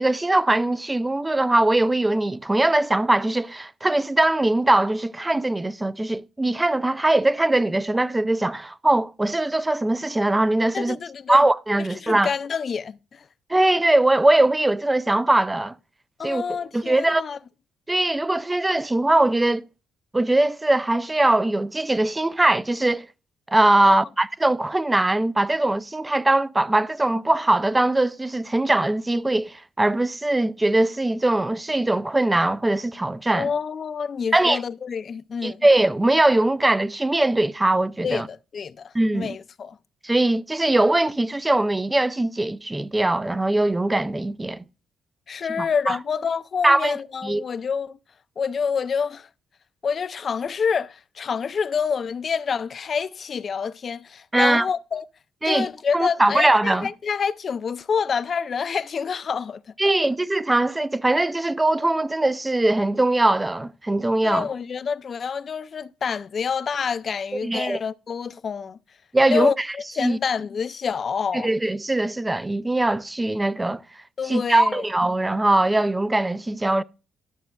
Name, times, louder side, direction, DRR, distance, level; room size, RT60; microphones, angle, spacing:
voice 1, 0.0-11.0 11.3-12.3 13.5-15.7 16.2-17.2 17.9-19.7 20.1-23.1 23.5-33.5 34.3-34.6 35.4-38.3 38.9-39.4 40.0-44.6 45.6-46.0 46.6-47.0 47.2-47.4 54.3-54.7 55.4-55.7 55.9-56.9 59.8-64.5 67.3-67.8 69.1-69.7 70.0-70.2 71.3-73.8 74.2-76.8, right 2 dB, 15° right, 0.4 m, -21 dB
voice 2, 10.7-11.4 12.0-13.2 16.2-17.4 23.8-24.1 33.4-35.6 38.0-39.8 45.3-48.0 48.4-49.3 49.8-55.1 55.5-59.6 64.2-68.8 69.3-69.5 70.0-71.5 74.2-74.8, left 6 dB, 45° left, 0.4 m, -27 dB
12.0 x 6.4 x 2.3 m
cardioid pair, 90°, 0 cm